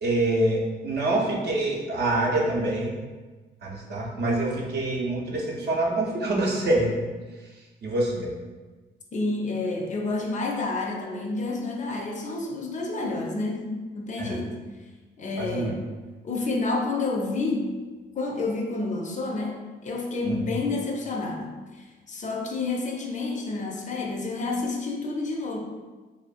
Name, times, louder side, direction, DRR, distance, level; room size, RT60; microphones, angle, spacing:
voice 1, 0.0-3.0 3.6-6.9 7.8-8.3 14.2-14.4 15.4-15.7 20.2-20.5, right 2 dB, 55° right, -2 dB, 0.5 m, -26 dB
voice 2, 9.1-14.6 15.2-15.8 16.2-17.8 18.2-25.6, left 3 dB, 40° left, 0 dB, 0.4 m, -29 dB
2.4 x 2.2 x 2.4 m, 1.3 s
cardioid pair, 90°, 20 cm